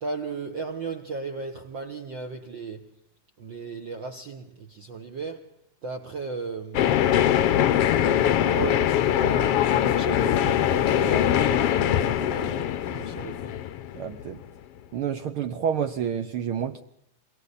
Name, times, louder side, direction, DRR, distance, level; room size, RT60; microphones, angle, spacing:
voice 1, 0.0-2.9 3.4-5.5 5.8-6.9 7.3-13.6, right 4 dB, 60° right, 1.2 m, -36 dB
sound 1, 6.7-14.4, left 11 dB, 70° left, 1.4 m, -22 dB
voice 2, 13.9-14.4 14.9-16.8, right 8 dB, 80° right, 1.2 m, -29 dB
28.0 x 23.0 x 4.1 m
omnidirectional pair, 3.8 m